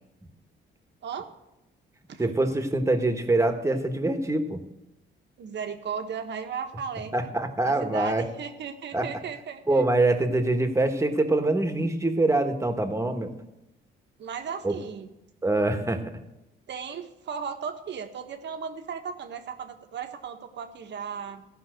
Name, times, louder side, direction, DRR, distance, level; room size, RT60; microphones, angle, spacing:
voice 1, 2.2-4.6 7.1-8.3 8.9-9.1 9.7-13.3 14.6-14.7 15.4-16.2, right 2 dB, 15° right, 6 dB, 1.5 m, -24 dB
voice 2, 5.4-7.1 7.6-9.8 14.2-15.1 16.7-21.5, right 7 dB, 65° right, 6 dB, 1.3 m, -36 dB
15.5 x 5.6 x 6.5 m, 0.92 s
cardioid pair, 90°, 20 cm